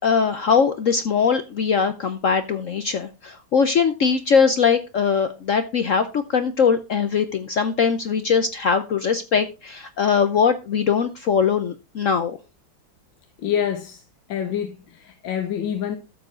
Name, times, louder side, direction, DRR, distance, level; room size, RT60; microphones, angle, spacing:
voice 1, 0.0-12.4, left 6 dB, 60° left, 0.9 m, -21 dB
voice 2, 13.4-14.0 14.3-16.0, left 9 dB, 75° left, 1.7 m, -26 dB
13.0 x 7.0 x 3.7 m
omnidirectional pair, 2.1 m